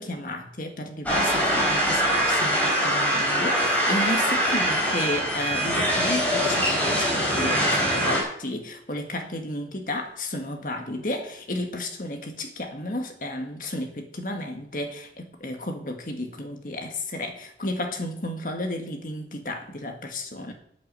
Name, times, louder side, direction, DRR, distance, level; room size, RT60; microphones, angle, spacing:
voice 1, 0.0-20.5, left 1 dB, 50° left, 4 dB, 1.9 m, -33 dB
sound 1, 1.1-8.2, equal, 10° left, 3.9 m, -23 dB
8.8 x 8.3 x 7.7 m, 0.68 s
head